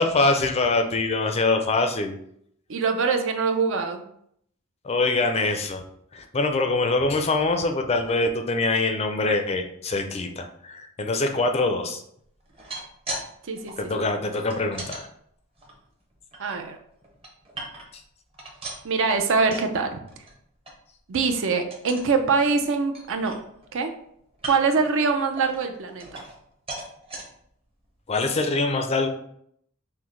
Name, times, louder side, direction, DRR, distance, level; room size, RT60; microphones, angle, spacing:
voice 1, 0.0-2.2 4.8-5.8 6.1-12.0 13.8-15.1 17.9-18.0 28.1-29.1, left 3 dB, 30° left, 5 dB, 0.4 m, -24 dB
voice 2, 2.7-4.0 13.4-13.9 16.4-16.8 18.8-20.0 21.1-23.4 23.7-23.9 24.5-26.2, right 4 dB, 60° right, 6 dB, 0.5 m, -24 dB
sound 1, 12.4-13.3 13.5-15.0 15.6-16.6 17.0-18.0 18.3-19.7 20.1-20.3 20.7-20.8 21.1-21.4 21.7-22.1 22.6-22.7 22.9-23.8 24.3-24.8 25.4-26.4 26.7-27.2 27.8-27.9 28.3-28.4, right 2 dB, 25° right, 0.8 m, -38 dB
5.9 x 2.1 x 3.1 m, 0.69 s
head